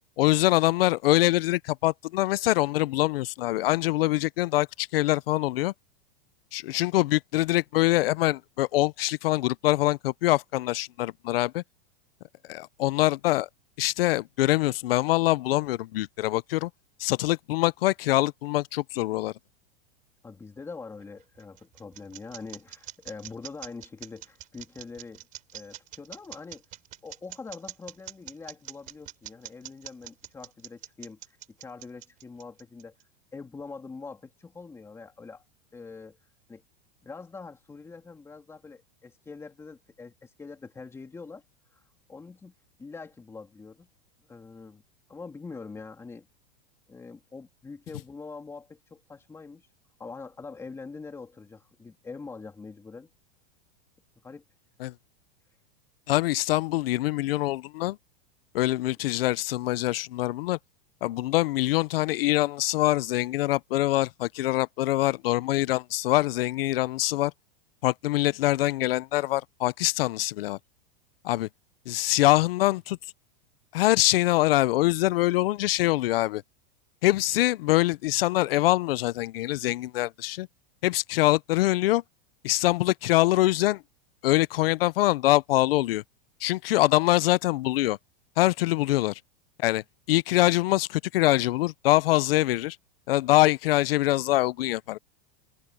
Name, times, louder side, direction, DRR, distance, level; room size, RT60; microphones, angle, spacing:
voice 1, 0.2-5.7 6.5-11.6 12.5-13.5 13.8-16.7 17.0-19.3 54.8-54.9 56.1-58.0 58.5-60.6 61.0-67.3 67.8-70.6 71.2-71.5 71.9-73.0 73.7-76.4 77.0-80.5 80.8-82.0 82.4-83.8 84.2-86.0 86.4-88.0 88.4-89.2 89.6-92.8 93.1-95.0, left 17 dB, 75° left, 0.7 m, -24 dB
voice 2, 20.2-25.2 25.5-26.6 27.0-31.2 31.6-32.9 33.3-35.4 35.7-36.2 36.5-36.6 37.0-41.4 41.7-41.8 42.1-42.5 42.8-43.9 44.3-44.8 45.1-46.3 46.9-49.6 50.0-53.1 54.2-54.4, left 4 dB, 10° left, 2.8 m, -43 dB
sound 1, 21.0-33.0, right 13 dB, 25° right, 3.4 m, -43 dB
supercardioid pair, 165°, 29 cm